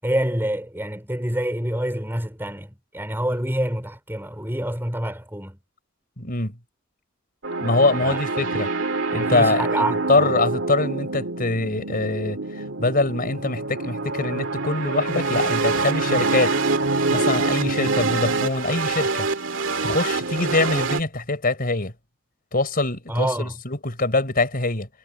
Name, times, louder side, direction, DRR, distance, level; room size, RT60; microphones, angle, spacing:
voice 1, 0.0-5.6 8.0-8.2 8.5-8.6 9.2-10.4 23.1-23.6, right 1 dB, 10° right, 5.7 m, -27 dB
voice 2, 6.2-6.5 7.6-8.7 9.1-16.6 17.1-19.3 19.8-21.9 22.5-24.9, left 2 dB, 45° left, 5.1 m, -24 dB
sound 1, 7.4-21.0, right 3 dB, 70° right, 2.5 m, -25 dB
head